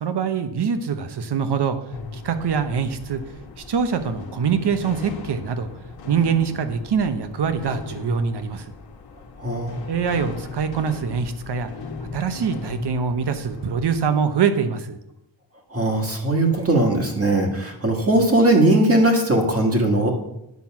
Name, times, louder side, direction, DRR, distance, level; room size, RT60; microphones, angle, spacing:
voice 1, 0.0-1.8 2.1-3.2 3.7-5.7 6.1-8.7 9.9-11.7 12.1-15.0, right 6 dB, 60° right, 9 dB, 1.0 m, -24 dB
sound 1, 1.9-14.2, left 3 dB, 55° left, 1.4 m, -38 dB
voice 2, 9.4-9.8 15.7-20.1, right 1 dB, 30° right, 1 dB, 1.5 m, -19 dB
9.5 x 6.0 x 5.9 m, 0.84 s
wide cardioid pair, 155°, 46 cm